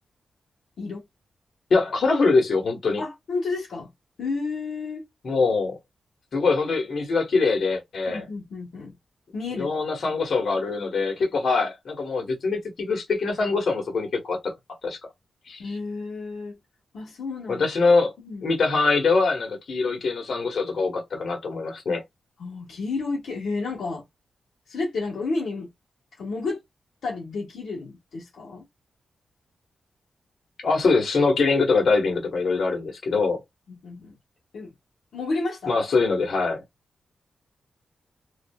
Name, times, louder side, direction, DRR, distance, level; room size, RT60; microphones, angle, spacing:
voice 1, 1.7-3.0 5.2-5.8 6.3-8.2 9.6-14.5 14.8-15.0 15.5-15.6 17.5-18.1 18.4-22.0 30.6-33.4 35.7-36.6, left 4 dB, 70° left, 1.3 m, -23 dB
voice 2, 3.0-3.9 4.2-5.1 8.1-8.9 9.3-9.7 10.1-10.2 15.6-16.6 16.9-17.7 18.2-18.6 22.4-24.0 24.7-25.7 26.2-26.6 27.0-28.6 33.7-34.2 34.5-34.7 35.1-35.9, left 3 dB, 90° left, 1.2 m, -31 dB
2.7 x 2.7 x 2.3 m
cardioid pair, 80°, 0 cm